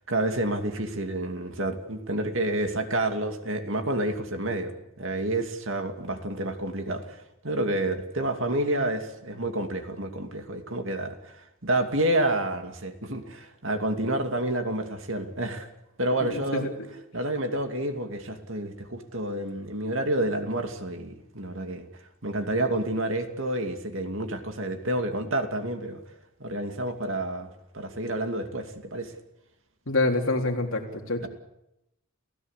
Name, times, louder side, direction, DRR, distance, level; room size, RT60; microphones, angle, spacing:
voice 1, 0.1-15.7 16.0-16.7 17.1-21.9 22.2-26.0 26.4-29.1 31.2-31.3, right 1 dB, 60° right, 6 dB, 2.6 m, -29 dB
voice 2, 16.2-16.7 29.9-31.3, left 2 dB, 65° left, 2 dB, 3.7 m, -26 dB
29.5 x 16.0 x 8.3 m, 0.87 s
head